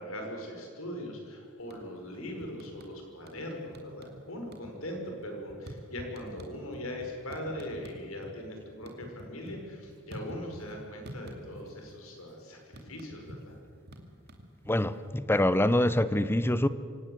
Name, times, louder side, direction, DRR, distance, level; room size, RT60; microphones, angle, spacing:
voice 1, 0.0-13.6, left 1 dB, 85° left, 2 dB, 5.7 m, -40 dB
sound 1, 1.6-2.1 2.4-3.4 3.7-4.2 4.5-8.3 8.6-10.7 11.1-11.9 12.2-15.1, equal, 50° right, 2.6 m, -47 dB
voice 2, 14.7-16.7, left 1 dB, 10° left, 15 dB, 0.7 m, -25 dB
26.0 x 18.0 x 8.1 m, 2.3 s
head